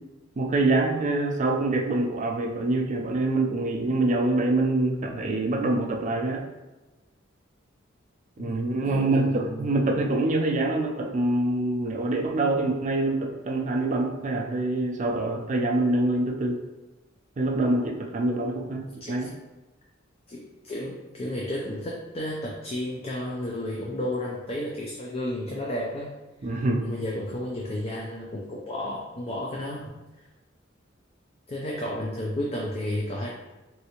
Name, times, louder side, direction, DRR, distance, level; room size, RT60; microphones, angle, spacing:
voice 1, 0.4-6.4 8.4-16.6 17.4-18.8 19.1-19.3 26.4-26.9, right 2 dB, 40° right, 2 dB, 0.4 m, -25 dB
voice 2, 8.4-9.7 18.6-19.3 20.3-26.1 26.5-29.8 31.5-33.3, left 1 dB, 30° left, -2 dB, 0.4 m, -32 dB
3.2 x 2.7 x 2.8 m, 1.1 s
head